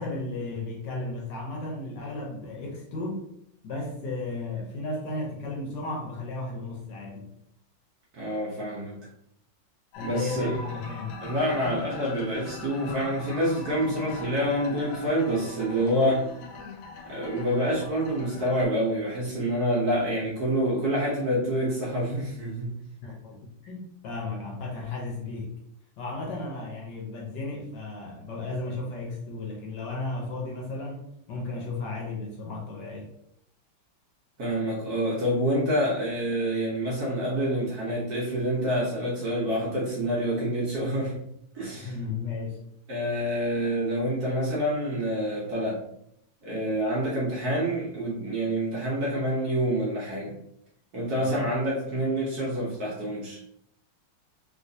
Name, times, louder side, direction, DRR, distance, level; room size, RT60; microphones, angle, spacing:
voice 1, 0.0-3.3 3.6-7.3 10.0-11.1 23.0-25.5 26.0-33.1 41.8-42.6 51.2-51.5, left 2 dB, 70° left, -1 dB, 1.2 m, -34 dB
voice 2, 8.1-9.0 10.0-10.6 11.2-16.2 17.1-22.8 34.4-41.2 41.5-41.9 42.9-45.8 46.4-50.3 50.9-53.6, equal, 60° right, -4 dB, 1.1 m, -27 dB
sound 1, 9.9-18.7, left 3 dB, 85° left, 1.4 m, -41 dB
3.2 x 3.0 x 2.6 m, 0.73 s
omnidirectional pair, 2.2 m